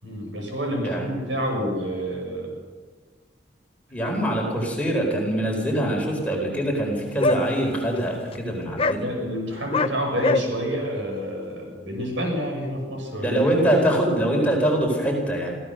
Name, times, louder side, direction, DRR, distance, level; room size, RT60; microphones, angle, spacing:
voice 1, 0.0-2.5 4.1-4.2 9.0-13.4, equal, 75° right, 1 dB, 6.7 m, -28 dB
voice 2, 3.9-9.0 13.2-15.5, right 1 dB, 10° left, -1 dB, 4.1 m, -23 dB
sound 1, 7.2-7.4 7.9-8.0 8.3-8.4 8.8-9.0 9.7-9.9 10.2-10.4, left 2 dB, 30° left, 0.7 m, -22 dB
26.0 x 15.5 x 6.5 m, 1.5 s
head